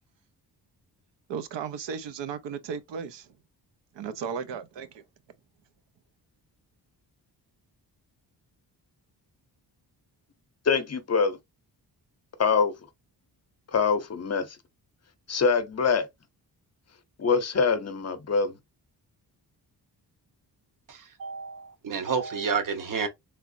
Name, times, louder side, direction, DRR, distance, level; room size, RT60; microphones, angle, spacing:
voice 1, 1.3-3.3 3.9-5.0, right 6 dB, 90° right, 0.6 m, -35 dB
voice 2, 10.7-11.4 12.4-12.7 13.7-14.6 15.3-16.1 17.2-18.6, left 5 dB, 40° left, 0.6 m, -24 dB
voice 3, 20.9-23.1, right 5 dB, 50° right, 0.8 m, -30 dB
3.3 x 2.9 x 2.5 m
wide cardioid pair, 130°, 41 cm